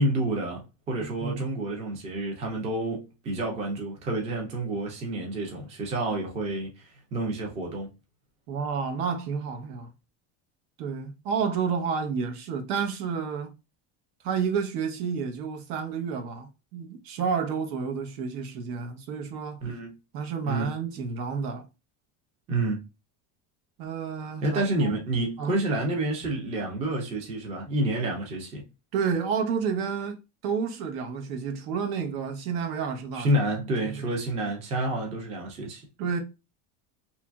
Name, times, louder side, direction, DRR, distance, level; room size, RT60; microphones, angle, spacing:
voice 1, 0.0-7.9 19.6-19.9 20.4-20.7 22.5-22.8 24.4-28.6 33.1-35.8, right 1 dB, 15° right, 0.3 m, -29 dB
voice 2, 8.5-9.9 10.8-13.5 14.2-19.6 20.1-21.6 23.8-24.9 25.4-25.6 28.9-33.3 33.8-34.0 36.0-36.2, right 6 dB, 80° right, 0.9 m, -30 dB
2.9 x 2.5 x 2.2 m
cardioid pair, 170°, 45 cm